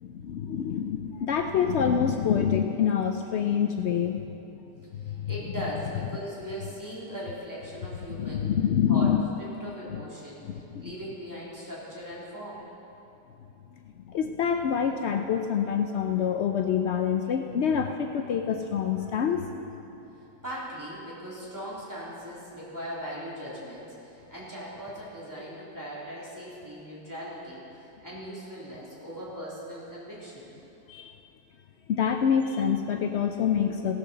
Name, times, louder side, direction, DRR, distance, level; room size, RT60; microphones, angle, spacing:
voice 1, 0.0-4.2 5.1-5.2 8.1-9.2 10.4-10.9 14.1-19.4 30.9-31.1 31.9-33.9, left 7 dB, 85° left, 5 dB, 0.6 m, -26 dB
voice 2, 4.8-8.5 8.9-9.1 9.4-12.6 20.4-30.5, equal, 10° right, -8 dB, 3.1 m, -39 dB
16.5 x 6.9 x 6.7 m, 3.0 s
omnidirectional pair, 1.8 m